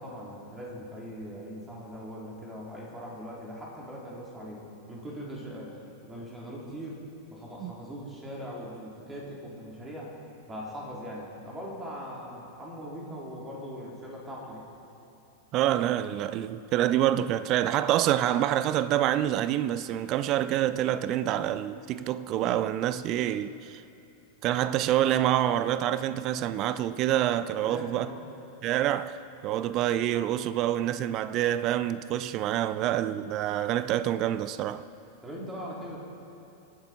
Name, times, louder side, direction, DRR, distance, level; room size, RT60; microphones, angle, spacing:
voice 1, 0.0-5.7 6.0-7.0 7.3-10.1 10.5-14.7 27.6-28.2 35.2-36.0, equal, 15° right, 3.7 m, -40 dB
voice 2, 15.5-23.8 24.4-28.1 28.6-34.8, right 12 dB, 40° right, 0.6 m, -27 dB
26.0 x 9.4 x 4.5 m
figure-of-eight pair, 90°, 0 cm